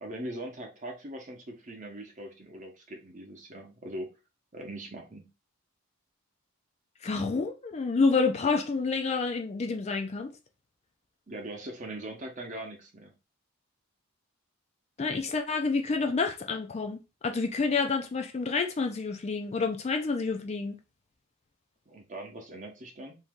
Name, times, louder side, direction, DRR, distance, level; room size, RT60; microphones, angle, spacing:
voice 1, 0.0-4.1 4.5-5.3 11.3-13.1 21.9-23.2, right 1 dB, 35° right, 0.8 m, -41 dB
voice 2, 7.0-10.3 15.0-20.8, left 4 dB, 30° left, 0.4 m, -28 dB
3.0 x 2.7 x 3.6 m
head